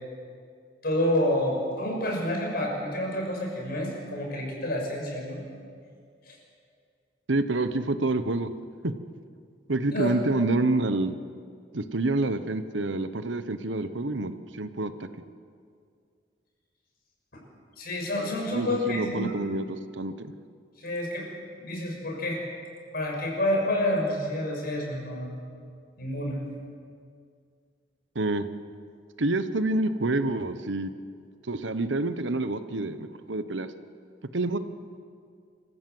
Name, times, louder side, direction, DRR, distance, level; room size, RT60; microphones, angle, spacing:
voice 1, 0.8-5.4 6.3-6.4 9.9-10.1 17.3-17.4 17.8-19.3 20.8-21.3 21.6-22.4 22.9-25.3 26.0-26.4, left 1 dB, 55° left, 0 dB, 6.3 m, -28 dB
voice 2, 7.3-8.5 8.8-8.9 9.7-11.1 11.7-15.1 18.5-20.3 28.1-28.5 29.2-30.9 31.5-33.7 34.3-34.6, right 2 dB, 90° right, 11 dB, 1.1 m, -27 dB
26.5 x 15.5 x 7.9 m, 2.2 s
head